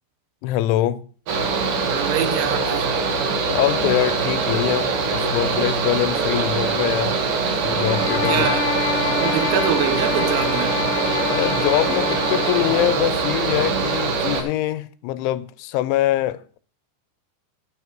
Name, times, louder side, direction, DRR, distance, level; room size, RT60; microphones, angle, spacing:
voice 1, 0.4-1.1 3.5-7.2 7.6-8.5 11.1-16.6, left 14 dB, 90° left, 3.0 m, -24 dB
Mechanical fan, 1.3-14.4, right 4 dB, 65° right, 2.2 m, -23 dB
voice 2, 1.7-2.9 8.2-8.7 9.1-10.8, right 9 dB, 85° right, 3.3 m, -25 dB
sound 1, 7.6-13.0, left 6 dB, 70° left, 2.2 m, -27 dB
11.0 x 9.0 x 3.0 m
omnidirectional pair, 5.3 m